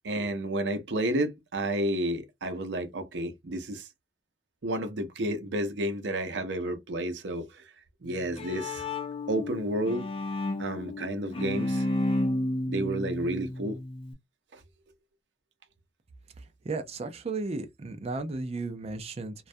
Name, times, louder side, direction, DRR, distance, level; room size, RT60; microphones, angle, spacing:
voice 1, 0.0-3.9 4.6-7.7 8.0-8.8 9.3-10.1 10.6-11.8 12.7-13.8 14.5-14.6, right 1 dB, 75° right, 0.6 m, -31 dB
Bowed string instrument, 8.0-14.1, left 1 dB, 30° left, 0.4 m, -32 dB
voice 2, 16.7-19.3, right 3 dB, 35° right, 0.4 m, -34 dB
2.3 x 2.1 x 2.6 m
head